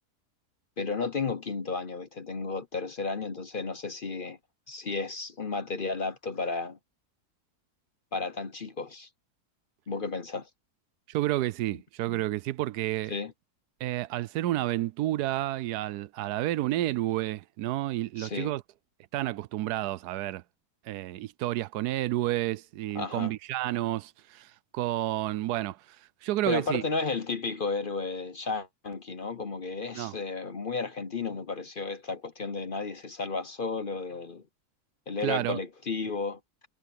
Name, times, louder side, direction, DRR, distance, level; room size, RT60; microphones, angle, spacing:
voice 1, 0.8-4.4 4.7-6.8 8.1-9.1 9.9-10.5 13.1-13.3 18.2-18.5 22.9-23.3 26.4-34.4 35.1-36.4, left 4 dB, 40° left, 0.9 m, -33 dB
voice 2, 11.1-13.1 13.8-18.6 19.1-20.4 20.9-26.0 26.2-26.8 29.9-30.2 35.2-35.6, right 15 dB, 85° right, 1.1 m, -30 dB
omnidirectional pair, 1.6 m